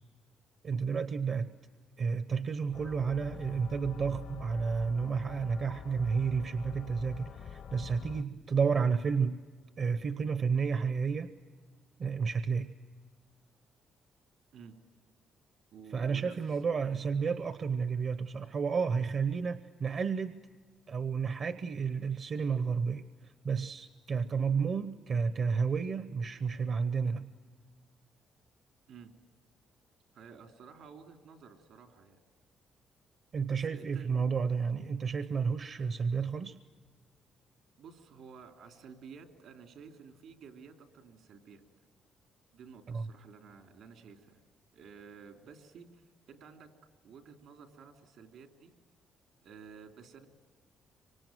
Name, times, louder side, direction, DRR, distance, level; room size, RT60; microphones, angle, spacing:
voice 1, 0.6-1.5 2.0-9.4 9.8-11.3 12.0-12.7 15.9-20.4 20.9-27.3 33.3-36.6 42.9-43.1, right 5 dB, 50° right, 12 dB, 0.9 m, -31 dB
sound 1, 2.7-8.2, left 7 dB, 65° left, 0.9 m, -46 dB
voice 2, 15.7-16.4 16.9-17.0 28.9-29.1 30.1-32.2 33.5-34.2 37.8-41.6 42.5-44.4 44.7-46.7 47.0-48.7 49.4-50.3, right 6 dB, 80° right, 5 dB, 3.2 m, -52 dB
25.5 x 25.0 x 9.1 m, 1.6 s
cardioid pair, 90°, 0 cm